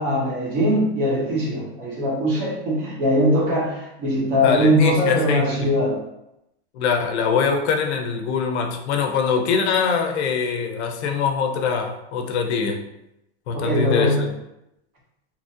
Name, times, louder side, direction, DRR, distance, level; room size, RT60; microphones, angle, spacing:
voice 1, 0.0-6.0 13.5-14.3, equal, 25° right, -3 dB, 0.6 m, -21 dB
voice 2, 4.4-5.7 6.7-12.9 13.5-14.2, left 6 dB, 80° left, 4 dB, 0.6 m, -23 dB
2.9 x 2.4 x 2.6 m, 0.86 s
supercardioid pair, 175°, 33 cm